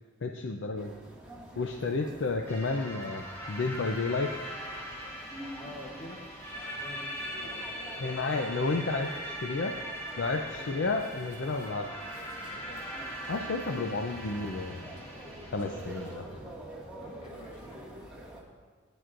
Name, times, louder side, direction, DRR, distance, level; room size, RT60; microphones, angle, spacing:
voice 1, 0.2-0.9 1.6-4.3 8.0-9.7 10.2-11.9 13.3-14.9 15.5-16.3, left 3 dB, 65° left, 4 dB, 0.6 m, -31 dB
sound 1, 0.8-18.4, right 1 dB, 5° right, 2.0 m, -47 dB
sound 2, 2.5-16.1, equal, 15° left, 2.6 m, -41 dB
voice 2, 5.6-6.3 6.5-8.9 10.6-10.8 12.5-12.9 16.0-16.2 16.6-17.9, left 1 dB, 30° left, -3 dB, 1.0 m, -49 dB
18.0 x 9.6 x 2.5 m, 1.5 s
head